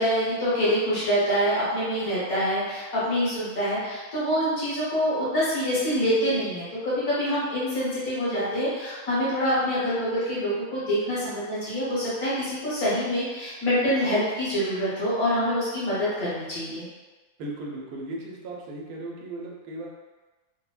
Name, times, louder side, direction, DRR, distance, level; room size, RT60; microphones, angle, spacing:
voice 1, 0.0-16.9, equal, 80° left, -9 dB, 1.7 m, -26 dB
voice 2, 17.4-19.9, right 2 dB, 85° right, -2 dB, 1.1 m, -36 dB
3.3 x 2.1 x 2.3 m, 1.2 s
omnidirectional pair, 1.5 m